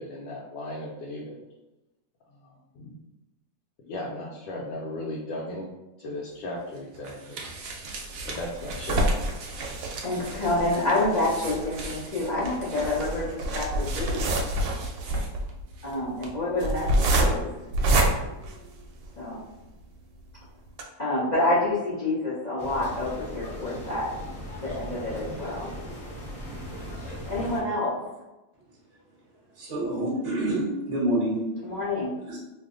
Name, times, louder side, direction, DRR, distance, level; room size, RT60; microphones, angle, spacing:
voice 1, 0.0-1.4 2.4-3.0 3.8-5.7 6.0-7.4 8.2-9.1, left 1 dB, 80° left, -4 dB, 1.3 m, -36 dB
sound 1, 6.3-16.0 16.2-16.3, right 3 dB, 65° right, 0.9 m, -42 dB
sound 2, 7.9-19.3 19.8-19.9 20.2-20.3 20.7-20.8, right 1 dB, 80° right, 1.3 m, -27 dB
voice 2, 10.0-14.4 15.8-17.4 19.2-19.4 21.0-24.1 24.6-25.7 27.3-27.9 31.6-32.1, left 2 dB, 60° left, -8 dB, 0.4 m, -28 dB
sound 3, 22.6-27.6, equal, 5° left, 0.7 m, -38 dB
voice 3, 29.5-31.4 32.3-32.4, right 1 dB, 30° right, -7 dB, 0.9 m, -27 dB
3.2 x 2.1 x 3.6 m, 0.99 s
omnidirectional pair, 2.0 m